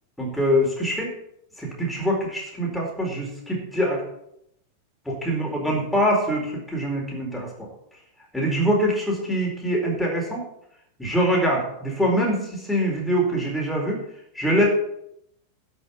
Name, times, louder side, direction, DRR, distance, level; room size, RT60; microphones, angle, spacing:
voice 1, 0.2-1.1 1.6-4.0 5.1-7.5 8.3-10.4 11.0-14.0 14.3-14.6, equal, 5° left, -2 dB, 4.4 m, -24 dB
12.0 x 6.4 x 7.1 m, 0.76 s
figure-of-eight pair, 90°, 0 cm